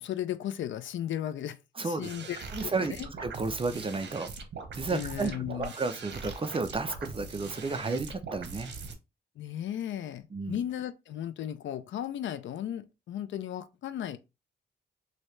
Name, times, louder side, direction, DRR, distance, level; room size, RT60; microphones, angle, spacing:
voice 1, 0.0-1.6 1.8-3.1 4.9-5.7 9.4-14.2, left 11 dB, 80° left, 0.4 m, -35 dB
voice 2, 1.8-2.1 2.5-4.3 4.7-8.7 10.3-10.6, right 3 dB, 30° right, 0.4 m, -32 dB
sound 1, 2.0-9.0, right 4 dB, 65° right, 0.9 m, -42 dB
3.2 x 2.7 x 3.1 m
cardioid pair, 75°, 19 cm